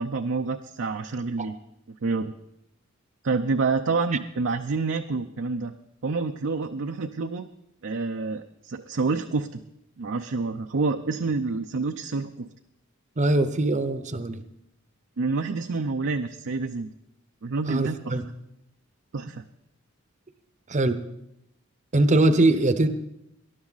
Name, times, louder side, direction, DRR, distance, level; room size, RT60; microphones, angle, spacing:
voice 1, 0.0-1.6 1.9-2.3 3.2-5.7 6.0-7.5 7.8-9.6 10.0-12.5 15.2-16.9 17.4-18.2 19.1-19.4, right 4 dB, 60° right, 6 dB, 0.6 m, -28 dB
voice 2, 13.2-14.4 17.7-18.2 20.7-21.0 21.9-22.9, right 2 dB, 35° right, 11 dB, 0.8 m, -22 dB
19.0 x 11.5 x 4.0 m, 0.82 s
head